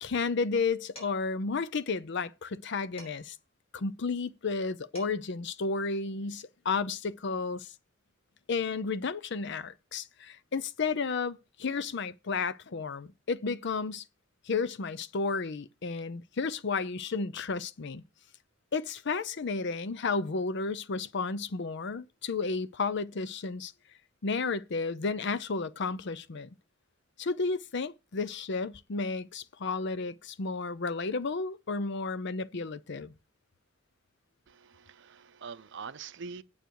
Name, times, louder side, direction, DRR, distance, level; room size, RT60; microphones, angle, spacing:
voice 1, 0.0-3.4 3.7-7.7 8.5-14.0 14.5-18.0 18.7-23.7 24.2-26.5 27.2-33.1, left 4 dB, 60° left, 0.6 m, -32 dB
Dishes pots and pans, 1.0-1.4 3.0-3.4 4.6-4.7 4.9-5.4, equal, 30° left, 5.1 m, -51 dB
voice 2, 34.5-36.4, right 5 dB, 60° right, 0.6 m, -44 dB
9.2 x 7.9 x 4.7 m
head